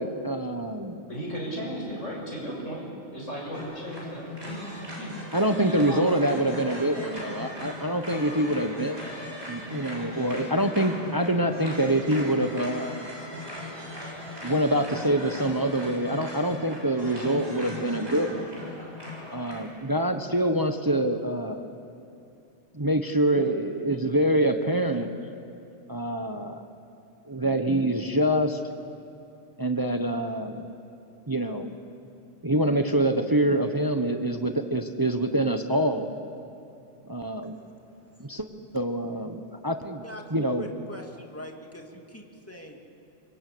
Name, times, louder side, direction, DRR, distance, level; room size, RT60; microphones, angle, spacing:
voice 1, 0.0-1.0 5.3-9.0 9.5-13.1 14.4-18.5 19.3-21.6 22.7-25.1 25.9-26.6 27.3-28.6 29.6-30.7 31.3-31.8 32.4-36.1 37.0-37.6 38.2-38.5 38.7-40.0 40.3-40.7, right 1 dB, 20° right, 6 dB, 1.0 m, -25 dB
voice 2, 1.1-5.1 5.6-6.7, equal, 75° left, -3 dB, 7.0 m, -36 dB
sound 1, 3.5-19.7, left 1 dB, 60° right, 7.1 m, -39 dB
voice 3, 37.5-38.3 40.0-42.8, equal, 10° left, 1 dB, 2.4 m, -43 dB
28.5 x 24.0 x 8.6 m, 2.6 s
omnidirectional pair, 1.3 m